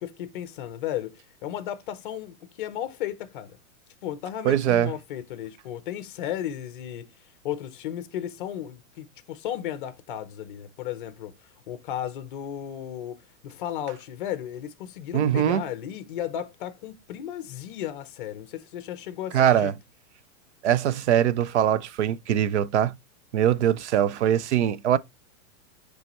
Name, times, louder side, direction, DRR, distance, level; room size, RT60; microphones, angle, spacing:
voice 1, 0.0-3.6 4.0-7.1 7.4-11.3 11.7-13.2 13.4-19.7, left 11 dB, 35° left, 0.7 m, -34 dB
voice 2, 4.4-4.9 15.1-15.6 19.3-19.7 20.6-22.9 23.3-25.0, right 10 dB, 55° right, 0.5 m, -22 dB
9.4 x 3.4 x 2.9 m
supercardioid pair, 175°, 43 cm